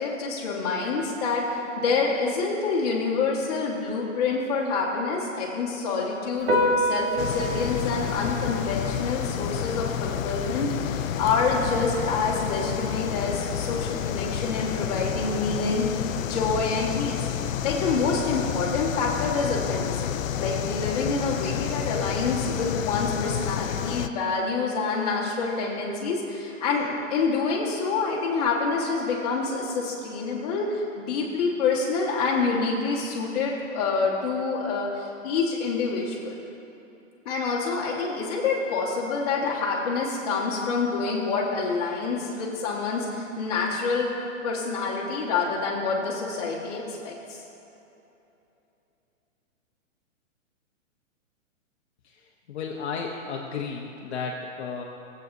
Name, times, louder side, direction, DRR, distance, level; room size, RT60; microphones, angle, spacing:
voice 1, 0.0-17.3 17.6-36.4 37.2-44.1 44.4-47.1, left 4 dB, 30° left, -4 dB, 1.5 m, -27 dB
Piano, 6.4-14.4, equal, 50° right, 1.7 m, -31 dB
sound 1, 7.2-24.1, left 10 dB, 90° left, 0.6 m, -30 dB
voice 2, 52.5-54.8, left 5 dB, 55° left, 0 dB, 0.9 m, -33 dB
18.5 x 7.9 x 2.7 m, 2.9 s
hypercardioid pair, 175°, 39 cm